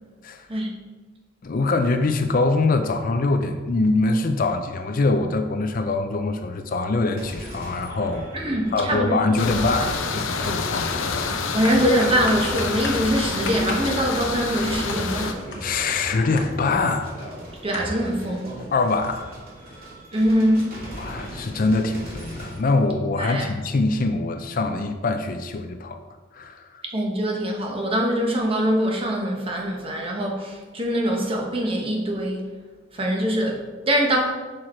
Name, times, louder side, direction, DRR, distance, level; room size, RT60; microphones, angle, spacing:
voice 1, 1.4-11.3 15.6-17.1 18.7-19.3 20.9-26.0 26.3-26.8, left 3 dB, 45° left, 7 dB, 0.4 m, -24 dB
sound 1, 7.2-22.6, equal, 50° right, 2.1 m, -39 dB
sound 2, 8.1-8.3 8.8-9.1 9.5-17.1 17.4-17.5 17.7-18.1, left 1 dB, 70° left, 1.1 m, -35 dB
voice 2, 8.3-9.3 11.5-15.4 17.6-18.5 20.1-20.7 23.2-23.5 26.9-32.4 32.9-34.2, equal, 30° right, 0 dB, 1.0 m, -23 dB
sound 3, 9.4-15.3, left 5 dB, 90° left, 0.6 m, -28 dB
6.1 x 4.7 x 4.3 m, 1.3 s
head